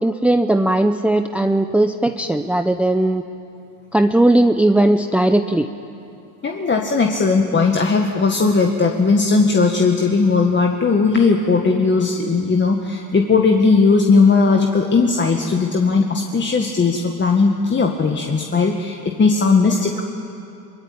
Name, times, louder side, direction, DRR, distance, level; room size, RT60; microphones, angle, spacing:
voice 1, 0.0-3.2 3.9-5.7, right 1 dB, 5° right, 8 dB, 0.7 m, -17 dB
voice 2, 6.4-20.0, left 4 dB, 25° left, 2 dB, 1.9 m, -17 dB
23.0 x 22.0 x 8.8 m, 2.7 s
supercardioid pair, 95°, 45 cm